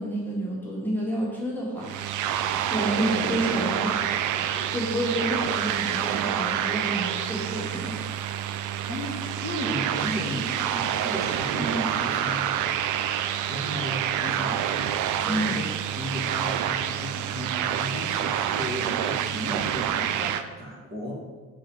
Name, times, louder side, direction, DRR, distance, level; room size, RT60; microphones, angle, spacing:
voice 1, 0.0-2.2 2.7-4.0 4.5-8.1 15.2-15.6, right 1 dB, 5° left, -5 dB, 1.7 m, -29 dB
sound 1, 1.8-20.4, right 10 dB, 80° right, 0.5 m, -28 dB
voice 2, 8.9-12.8 13.2-21.1, equal, 30° right, -4 dB, 2.1 m, -34 dB
5.7 x 4.8 x 4.6 m, 1.3 s
cardioid pair, 90°, 30 cm